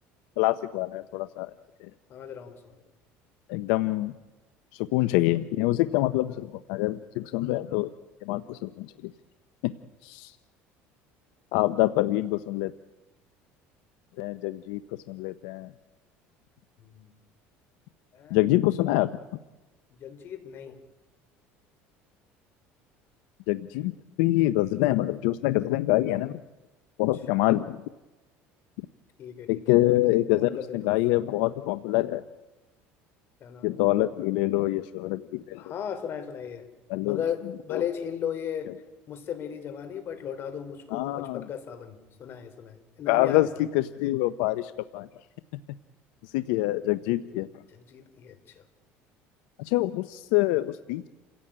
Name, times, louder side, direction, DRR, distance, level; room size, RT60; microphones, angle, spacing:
voice 1, 0.4-1.5 3.5-4.1 4.9-7.9 8.3-8.9 9.6-9.7 10.0-10.3 11.5-12.7 14.2-14.8 15.1-15.7 18.3-19.1 23.5-26.4 27.0-27.8 29.5-32.2 33.6-35.6 36.9-37.2 37.7-37.8 40.9-41.4 43.1-45.1 46.3-47.5 49.6-51.1, left 17 dB, 85° left, 12 dB, 0.7 m, -25 dB
voice 2, 2.1-2.7 16.8-17.1 18.1-18.4 20.0-20.8 27.3-27.6 29.2-29.9 30.3-30.9 33.4-33.8 35.6-36.6 37.0-38.7 39.1-43.5 47.7-48.3, left 8 dB, 45° left, 9 dB, 3.7 m, -36 dB
28.5 x 16.5 x 8.8 m, 1.1 s
cardioid pair, 125°, 5 cm